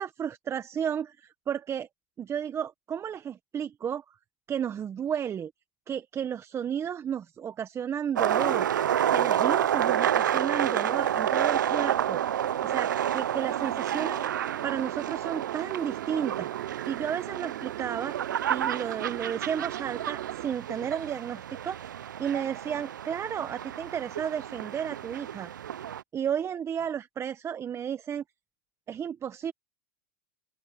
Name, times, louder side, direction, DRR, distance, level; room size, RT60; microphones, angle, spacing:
voice 1, 0.0-1.9 2.2-4.0 4.5-5.5 5.9-14.3 14.6-16.5 16.9-18.2 18.5-21.8 22.2-25.5 26.1-28.2 28.9-29.5, right 8 dB, 25° right, 1.2 m, -33 dB
sound 1, 8.2-26.0, right 10 dB, 90° right, 0.6 m, -29 dB
Motorcycle, 10.7-20.5, right 18 dB, 70° right, 3.0 m, -40 dB
open air
hypercardioid pair, 105°, 10 cm